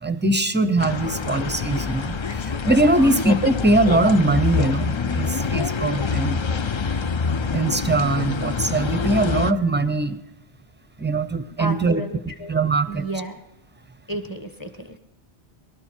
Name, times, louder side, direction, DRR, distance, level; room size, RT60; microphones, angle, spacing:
voice 1, 0.0-6.5 7.5-10.2 11.0-13.1, right 2 dB, 10° right, 13 dB, 0.6 m, -22 dB
sound 1, 0.8-9.5, left 5 dB, 40° left, 0.4 m, -25 dB
voice 2, 11.6-12.5 12.9-13.4 14.1-14.9, right 1 dB, 20° left, 8 dB, 1.6 m, -32 dB
23.5 x 12.5 x 4.5 m, 0.93 s
omnidirectional pair, 1.1 m